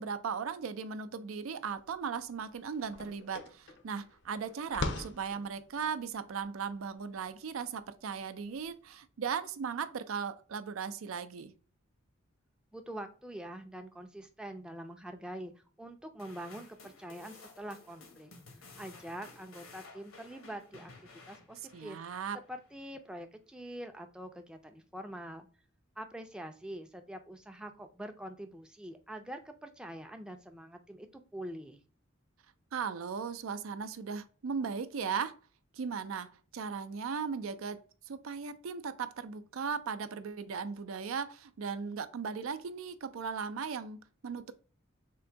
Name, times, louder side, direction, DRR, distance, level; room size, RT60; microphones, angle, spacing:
voice 1, 0.0-11.5 21.7-22.4 32.7-35.4 35.7-37.8 38.1-44.5, right 6 dB, 90° right, 0.4 m, -37 dB
sound 1, 1.8-1.9 2.2-8.7, left 2 dB, 60° left, 0.6 m, -42 dB
voice 2, 12.7-18.3 18.8-20.9 21.3-22.0 22.5-25.5 26.0-31.8, right 1 dB, 5° right, 0.4 m, -45 dB
sound 2, 16.2-22.7, left 3 dB, 80° left, 1.1 m, -55 dB
3.7 x 2.6 x 4.4 m
head